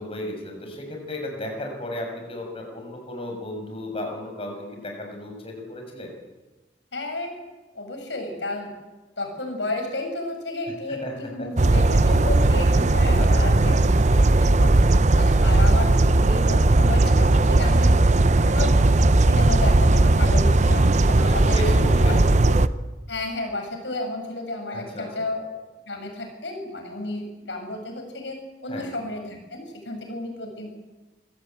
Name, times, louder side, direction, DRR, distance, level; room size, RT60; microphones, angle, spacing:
voice 1, 0.0-6.1 10.9-11.1 11.4-11.5 13.1-13.8 21.3-22.3 24.7-25.2 28.7-28.9, left 1 dB, 30° left, 2 dB, 6.5 m, -34 dB
voice 2, 6.9-7.4 7.7-8.7 9.2-14.7 15.1-17.9 18.4-18.8 19.2-21.7 22.0-22.2 22.4-22.5 23.1-25.5 25.9-30.7, left 2 dB, 85° left, 4 dB, 6.9 m, -32 dB
sound 1, 11.6-22.7, right 2 dB, 40° right, 0.7 m, -17 dB
25.5 x 16.5 x 9.0 m, 1.2 s
head